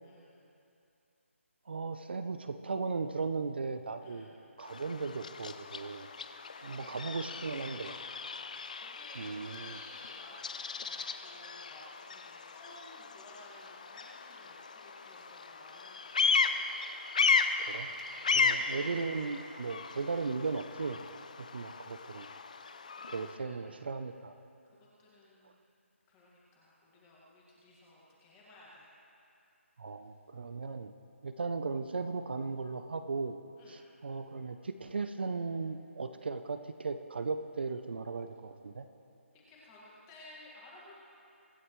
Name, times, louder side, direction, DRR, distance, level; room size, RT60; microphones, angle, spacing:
voice 1, 0.0-0.5 4.0-4.3 6.3-8.1 8.8-16.6 18.1-18.4 21.6-21.7 22.9-23.8 24.6-25.6 26.1-28.9 33.6-33.9 39.5-40.9, left 1 dB, 10° left, -5 dB, 1.8 m, -56 dB
voice 2, 1.7-4.3 4.6-6.1 6.6-8.0 9.2-9.8 17.7-17.9 18.3-21.0 21.4-22.3 23.1-24.3 29.8-30.9 31.2-33.4 33.7-38.9, right 4 dB, 50° right, 9 dB, 0.6 m, -37 dB
Bird vocalization bird call bird song, 4.6-23.4, left 5 dB, 35° left, 0.5 m, -35 dB
24.0 x 11.0 x 3.2 m, 2.7 s
hypercardioid pair, 175°, 7 cm